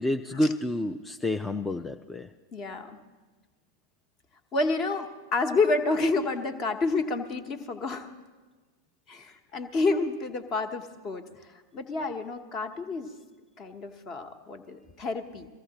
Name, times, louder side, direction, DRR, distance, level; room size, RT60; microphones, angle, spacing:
voice 1, 0.0-2.3, left 1 dB, 10° left, 6 dB, 0.4 m, -29 dB
voice 2, 2.5-3.0 4.5-8.1 9.1-13.1 13.6-15.5, left 3 dB, 35° left, 8 dB, 1.1 m, -29 dB
23.0 x 15.0 x 2.9 m, 1.3 s
figure-of-eight pair, 90°, 0 cm